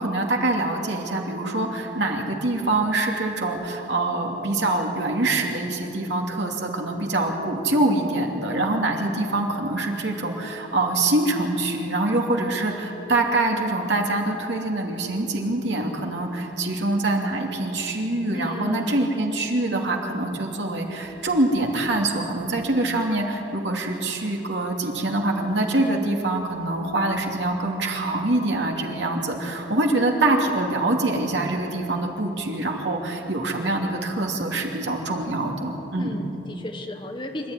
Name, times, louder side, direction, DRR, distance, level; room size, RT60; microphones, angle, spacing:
voice 1, 0.0-36.2, right 2 dB, 70° right, 1 dB, 2.9 m, -25 dB
voice 2, 18.3-19.3 29.8-30.0 36.0-37.5, left 1 dB, 25° left, 5 dB, 1.3 m, -33 dB
26.5 x 13.0 x 9.8 m, 3.0 s
head